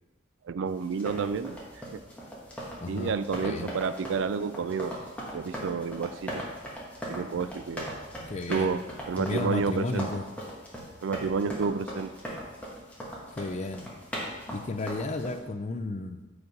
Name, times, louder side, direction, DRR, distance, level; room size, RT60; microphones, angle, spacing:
voice 1, 0.4-1.6 1.9-2.0 2.9-5.0 5.3-6.4 7.1-7.9 8.5-10.1 11.0-12.1, right 5 dB, 75° right, 14 dB, 0.4 m, -30 dB
sound 1, 0.8-15.4, equal, 5° left, 1.6 m, -39 dB
voice 2, 2.8-3.7 8.3-8.7 9.2-10.2 13.3-13.9 14.5-16.2, left 3 dB, 35° left, 8 dB, 0.5 m, -33 dB
7.9 x 4.9 x 5.3 m, 1.1 s
head